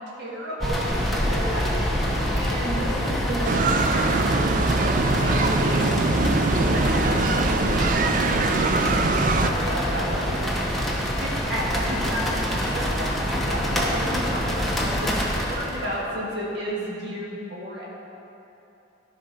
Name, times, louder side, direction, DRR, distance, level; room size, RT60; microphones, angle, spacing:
voice 1, 0.2-0.9 1.3-1.8 2.3-5.9 6.5-10.4 11.2-17.9, equal, 60° right, -5 dB, 1.7 m, -32 dB
sound 1, 0.6-15.9, equal, ahead, 0.9 m, -25 dB
sound 2, 3.4-9.5, right 4 dB, 45° right, 0.4 m, -23 dB
12.5 x 5.0 x 5.6 m, 2.9 s
head